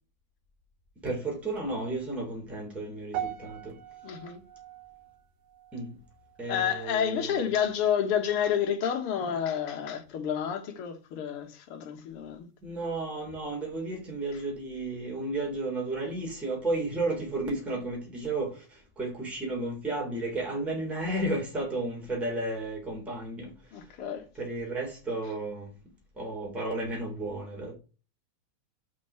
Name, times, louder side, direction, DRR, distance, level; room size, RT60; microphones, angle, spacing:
voice 1, 1.0-3.7 5.7-5.9 6.4-7.5 12.6-18.6 19.0-23.5 24.4-25.7 26.2-27.7, right 2 dB, ahead, 2.9 m, -33 dB
sound 1, 3.1-7.5 7.8-8.2 8.8-8.9, right 11 dB, 85° right, 2.4 m, -42 dB
voice 2, 4.0-4.4 6.5-12.5 23.7-24.3, left 8 dB, 55° left, 2.1 m, -29 dB
6.2 x 5.4 x 6.9 m
omnidirectional pair, 3.3 m